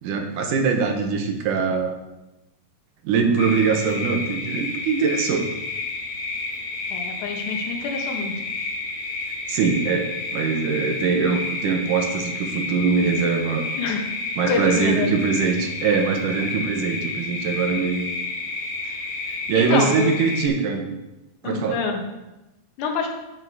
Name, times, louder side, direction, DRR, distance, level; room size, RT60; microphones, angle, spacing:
voice 1, 0.0-2.0 3.0-5.5 9.5-13.7 14.4-18.1 19.3-20.9 21.4-21.8, right 5 dB, 75° right, 3 dB, 2.7 m, -22 dB
sound 1, 3.4-20.5, left 3 dB, 55° left, 2.0 m, -30 dB
voice 2, 6.9-8.3 13.8-14.0 14.5-15.2 18.8-19.0 19.6-20.1 21.4-22.0 22.8-23.1, left 5 dB, 70° left, 2 dB, 2.7 m, -26 dB
8.7 x 7.6 x 4.7 m, 0.99 s
omnidirectional pair, 3.7 m